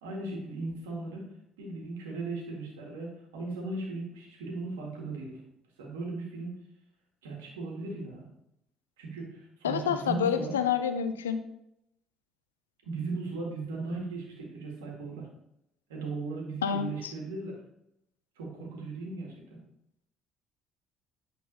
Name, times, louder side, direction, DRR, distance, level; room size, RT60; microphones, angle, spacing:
voice 1, 0.0-1.3 1.6-5.4 5.8-6.5 7.2-8.2 9.0-10.6 12.8-15.3 15.9-17.5 18.4-19.6, right 3 dB, 80° right, -1 dB, 1.9 m, -37 dB
voice 2, 9.6-11.4 16.6-17.1, left 7 dB, 90° left, 9 dB, 0.5 m, -28 dB
8.6 x 4.0 x 3.9 m, 0.80 s
hypercardioid pair, 55°, 0 cm